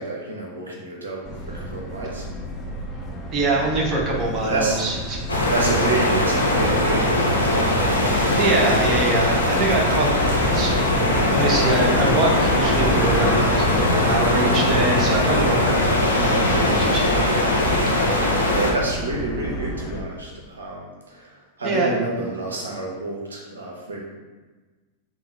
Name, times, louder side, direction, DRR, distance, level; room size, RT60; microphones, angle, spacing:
voice 1, 0.0-2.3 4.4-4.8 5.5-7.4 10.2-10.6 18.4-24.0, right 2 dB, 70° right, -2 dB, 0.6 m, -28 dB
Subway metro underground, 1.3-20.0, left 1 dB, 25° left, 0.6 m, -30 dB
voice 2, 3.3-5.2 8.4-10.2 10.5-16.0 16.2-17.2 21.6-21.9, right 2 dB, 30° right, -2 dB, 0.8 m, -24 dB
sound 1, 5.3-18.7, left 1 dB, 75° left, 0.6 m, -20 dB
3.7 x 2.3 x 4.2 m, 1.3 s
figure-of-eight pair, 90°, 0 cm